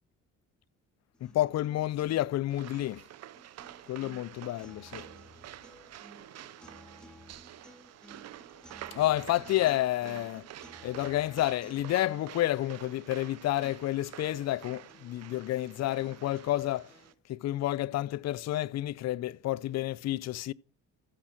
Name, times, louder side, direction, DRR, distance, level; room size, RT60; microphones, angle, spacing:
sound 1, 1.1-17.2, equal, 5° left, 2.3 m, -57 dB
voice 1, 1.3-3.0 3.9-5.0 8.9-10.5 10.8-16.9 17.3-20.5, left 14 dB, 60° left, 0.5 m, -30 dB
sound 2, 2.5-17.1, right 12 dB, 55° right, 0.6 m, -48 dB
14.5 x 5.1 x 6.2 m
cardioid pair, 90°, 30 cm